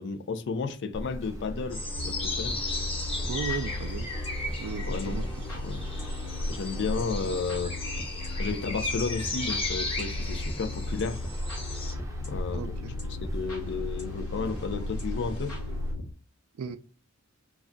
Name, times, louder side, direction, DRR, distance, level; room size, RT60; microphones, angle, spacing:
voice 1, 0.0-2.6 4.9-5.2 5.6-5.8 6.5-7.8 8.4-11.2 12.2-12.9 13.3-15.5, left 4 dB, 55° left, 0.4 m, -33 dB
sound 1, 0.9-15.9, equal, 15° right, 0.6 m, -37 dB
sound 2, 1.7-11.9, left 3 dB, 25° left, 0.8 m, -36 dB
sound 3, 1.9-16.1, left 3 dB, 85° left, 1.0 m, -38 dB
voice 2, 3.3-4.1 4.6-5.6 12.5-13.0 16.6-16.8, right 6 dB, 70° right, 0.4 m, -36 dB
2.4 x 2.1 x 3.6 m
head